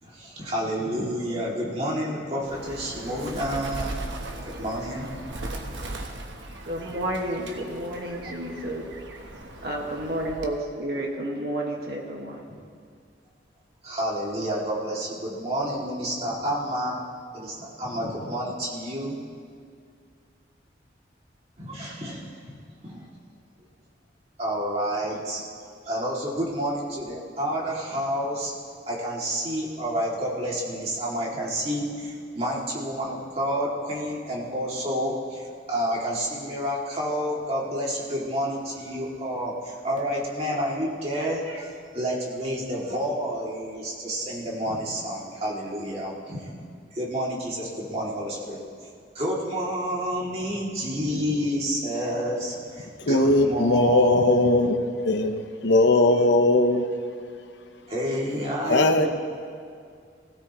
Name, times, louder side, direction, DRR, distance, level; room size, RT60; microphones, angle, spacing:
voice 1, 0.0-4.1 4.4-5.2 12.5-12.6 13.8-17.0 17.3-19.2 21.6-22.6 22.8-23.0 24.4-25.4 25.8-28.5 28.9-46.5 46.9-48.9 49.1-54.5 55.7-56.1 57.9-59.1, equal, 35° right, 2.6 m, -29 dB
Bird, 2.4-10.7, right 1 dB, 85° right, 1.2 m, -38 dB
voice 2, 6.6-8.9 9.6-12.5, right 1 dB, 55° right, 1.8 m, -31 dB
voice 3, 53.0-56.9 58.7-59.1, left 2 dB, 80° left, 1.0 m, -20 dB
20.5 x 16.5 x 3.1 m
head